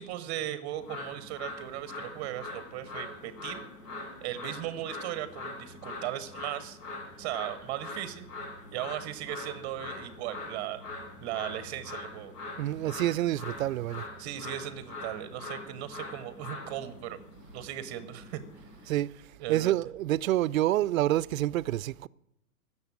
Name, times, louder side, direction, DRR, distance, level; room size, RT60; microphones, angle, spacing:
voice 1, 0.0-3.7 4.2-6.8 7.2-8.3 8.7-10.8 11.2-12.3 14.2-17.2 17.5-18.4 18.8-18.9 19.4-19.8, right 12 dB, 25° right, 0.7 m, -37 dB
sound 1, 0.8-19.0, left 2 dB, 75° left, 4.5 m, -43 dB
voice 2, 12.6-14.1 18.9-19.1 19.5-22.1, right 14 dB, 60° right, 0.5 m, -27 dB
15.5 x 6.8 x 9.6 m
hypercardioid pair, 145°, 48 cm